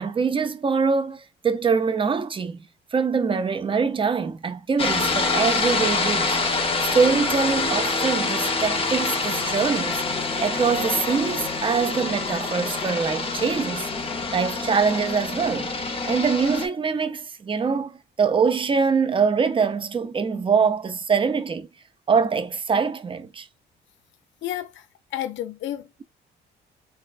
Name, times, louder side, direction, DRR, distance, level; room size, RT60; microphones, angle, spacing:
voice 1, 0.0-6.4 6.8-10.0 10.4-13.9 14.3-21.7 22.1-23.5, right 5 dB, 25° right, 0.5 m, -24 dB
sound 1, 4.8-16.7, left 3 dB, 30° left, 0.6 m, -26 dB
voice 2, 24.4-24.8 25.1-26.0, left 12 dB, 70° left, 0.5 m, -31 dB
3.5 x 2.3 x 2.3 m
cardioid pair, 90°, 20 cm